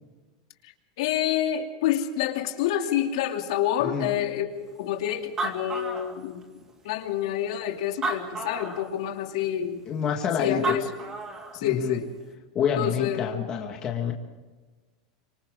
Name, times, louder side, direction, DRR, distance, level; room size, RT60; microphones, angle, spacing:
voice 1, 0.6-6.4 6.8-9.8 10.4-10.9 11.5-12.1 12.8-13.3, left 11 dB, 60° left, 3 dB, 2.7 m, -28 dB
voice 2, 3.8-4.1 9.9-10.8 11.6-12.0 12.5-14.1, left 7 dB, 25° left, 1 dB, 1.7 m, -27 dB
Animal, 4.9-5.0 5.2-6.6 7.3-7.4 7.9-8.9 10.3-10.4 10.6-11.6, right 3 dB, 15° right, 2.4 m, -31 dB
29.5 x 26.0 x 3.7 m, 1.3 s
supercardioid pair, 180°, 3 cm